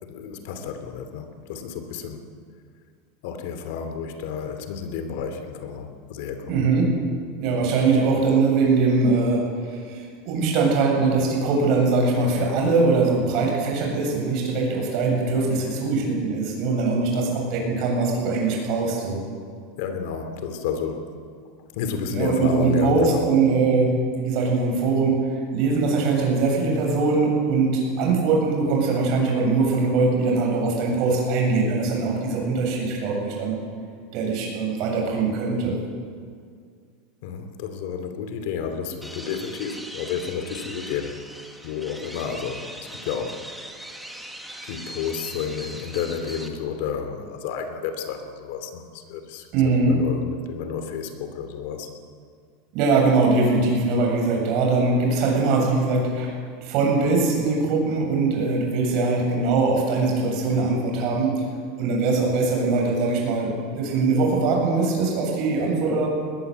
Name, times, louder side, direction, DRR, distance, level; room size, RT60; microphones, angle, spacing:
voice 1, 0.0-2.3 3.2-6.7 19.8-21.1 21.7-23.3 37.2-41.1 41.6-43.7 44.7-51.9, left 6 dB, 60° left, 8 dB, 2.9 m, -31 dB
voice 2, 6.5-6.9 7.4-19.2 22.1-25.2 25.5-33.6 34.1-35.8 49.5-50.0 52.7-56.3 56.6-61.3 61.8-66.1, right 3 dB, 45° right, 0 dB, 7.5 m, -22 dB
sound 1, 39.0-46.5, right 1 dB, ahead, 1.8 m, -40 dB
21.0 x 20.5 x 8.1 m, 2.1 s
supercardioid pair, 170°, 0 cm